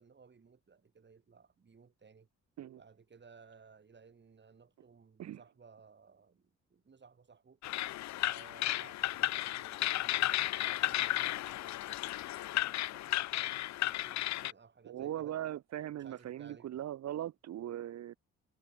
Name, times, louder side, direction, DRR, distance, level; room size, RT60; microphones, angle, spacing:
voice 1, 0.0-2.3 2.8-7.6 8.2-15.4 16.0-16.7, right 5 dB, 35° right, 7.1 m, -60 dB
sound 1, 7.6-14.5, left 15 dB, 65° left, 0.6 m, -34 dB
voice 2, 14.9-18.2, right 12 dB, 60° right, 0.9 m, -40 dB
cardioid pair, 90°, 30 cm